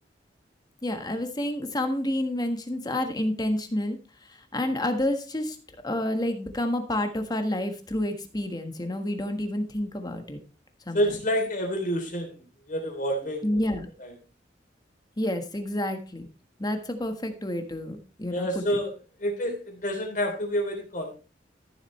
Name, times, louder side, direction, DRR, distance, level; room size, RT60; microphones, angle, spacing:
voice 1, 0.8-4.0 4.3-5.6 5.8-10.4 10.9-11.2 13.4-13.9 15.2-16.3 16.6-18.8, left 1 dB, 25° left, 6 dB, 1.4 m, -29 dB
voice 2, 10.9-13.5 14.0-14.1 18.3-18.9 19.2-21.1, equal, 50° left, 3 dB, 3.3 m, -28 dB
14.0 x 7.4 x 3.2 m, 0.34 s
head